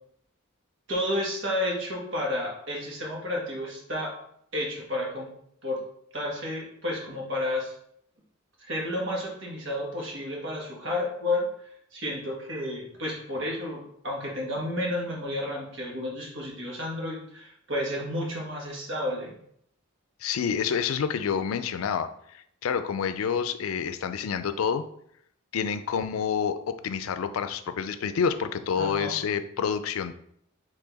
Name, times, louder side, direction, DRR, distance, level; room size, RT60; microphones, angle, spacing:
voice 1, 0.9-4.1 4.5-5.3 5.6-5.8 6.1-7.7 8.7-11.5 11.9-19.4 28.8-29.1, left 1 dB, 60° right, -2 dB, 1.4 m, -31 dB
voice 2, 20.2-24.8 25.5-30.1, left 7 dB, 80° left, 11 dB, 0.4 m, -28 dB
4.7 x 2.8 x 4.0 m, 0.69 s
head